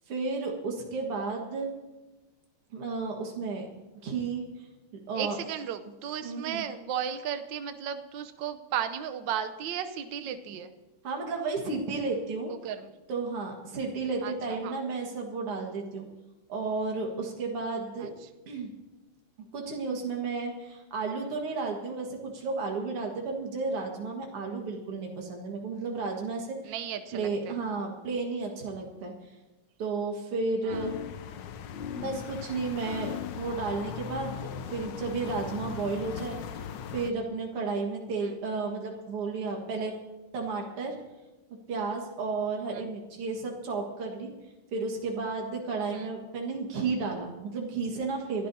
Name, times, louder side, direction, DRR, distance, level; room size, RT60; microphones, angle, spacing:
voice 1, 0.1-1.7 2.7-3.7 4.0-4.4 5.1-5.4 6.2-6.7 11.0-12.5 13.1-16.1 16.5-18.1 18.5-18.7 19.5-26.8 27.1-29.1 29.8-31.0 31.9-36.4 36.9-39.9 40.3-41.0 41.7-44.3 44.7-48.5, right 4 dB, 85° right, 0 dB, 2.6 m, -32 dB
voice 2, 5.1-10.7 12.6-12.9 14.2-14.3 14.6-14.8 18.0-18.1 26.6-27.6 30.6-30.9 38.2-38.3 42.7-42.8 45.9-46.1, right 9 dB, 65° right, 9 dB, 1.4 m, -35 dB
sound 1, 30.7-37.1, left 8 dB, 70° left, 1.2 m, -38 dB
28.5 x 12.0 x 2.8 m, 1.1 s
omnidirectional pair, 2.4 m